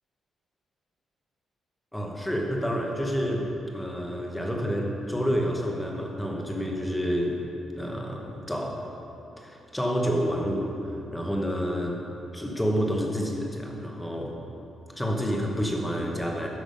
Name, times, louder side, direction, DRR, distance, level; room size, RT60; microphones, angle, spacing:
voice 1, 1.9-3.5 3.7-7.5 7.8-8.8 9.4-12.0 12.3-14.4 14.9-16.5, equal, 5° left, -1 dB, 1.0 m, -29 dB
13.5 x 5.9 x 5.2 m, 2.9 s
cardioid pair, 175°, 0 cm